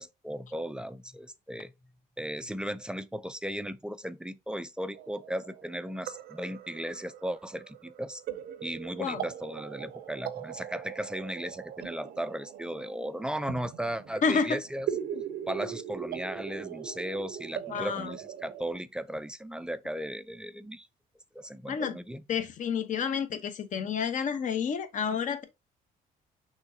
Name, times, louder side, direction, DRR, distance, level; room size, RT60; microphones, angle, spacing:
voice 1, 0.0-1.7 2.2-8.2 8.6-14.9 15.5-20.9 21.3-22.2, equal, 5° right, 0.3 m, -36 dB
sound 1, 4.9-18.7, right 9 dB, 65° right, 0.6 m, -40 dB
voice 2, 14.2-14.6 15.1-15.2 17.7-18.1 21.7-22.0 22.3-25.4, left 6 dB, 50° left, 0.9 m, -29 dB
6.1 x 3.2 x 2.7 m
cardioid pair, 110°, 17 cm